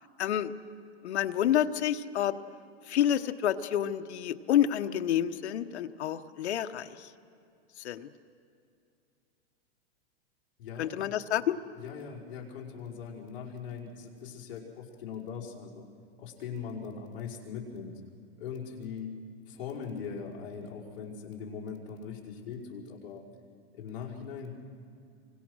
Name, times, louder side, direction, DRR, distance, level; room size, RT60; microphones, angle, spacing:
voice 1, 0.2-0.5 1.0-2.3 2.9-7.1 7.8-8.1 10.8-11.5, left 11 dB, 80° left, 8 dB, 1.2 m, -28 dB
voice 2, 10.6-11.0 11.8-15.9 16.2-18.0 18.4-19.2 19.5-23.2 23.7-24.5, left 6 dB, 55° left, -2 dB, 5.0 m, -40 dB
28.5 x 24.5 x 6.4 m, 2.5 s
supercardioid pair, 165°, 33 cm